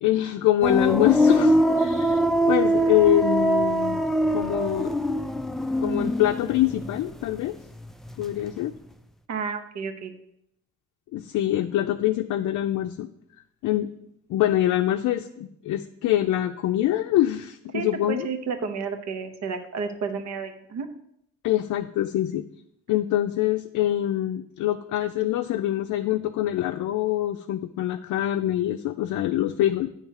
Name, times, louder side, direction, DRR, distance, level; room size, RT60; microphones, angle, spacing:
voice 1, 0.0-5.0 5.8-7.5 8.2-8.7 11.1-13.1 13.6-13.9 14.3-18.3 21.4-22.4 22.9-29.9, left 13 dB, 75° left, 5 dB, 0.5 m, -24 dB
sound 1, 0.6-7.5 7.7-8.5, equal, ahead, 0.4 m, -23 dB
voice 2, 9.3-10.1 17.7-20.9, right 5 dB, 60° right, 7 dB, 1.0 m, -31 dB
8.7 x 3.3 x 6.4 m, 0.78 s
cardioid pair, 90°, 30 cm